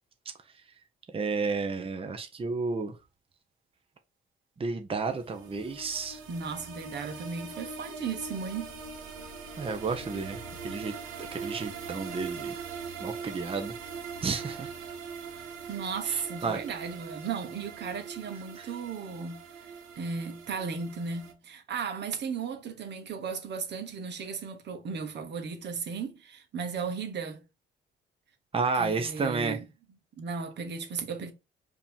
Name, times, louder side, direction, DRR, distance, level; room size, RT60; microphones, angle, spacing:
voice 1, 1.1-2.9 4.6-6.2 9.6-10.9 11.3-12.5 13.0-13.7 14.2-14.7 16.1-16.6 28.5-29.6, right 4 dB, 30° right, 0.9 m, -31 dB
sound 1, 5.1-21.3, right 5 dB, 90° right, 1.1 m, -41 dB
voice 2, 6.3-8.7 15.7-19.4 20.0-27.4 28.8-29.6 30.2-31.3, right 5 dB, 60° right, 1.2 m, -35 dB
5.0 x 2.9 x 3.6 m
cardioid pair, 90°, 20 cm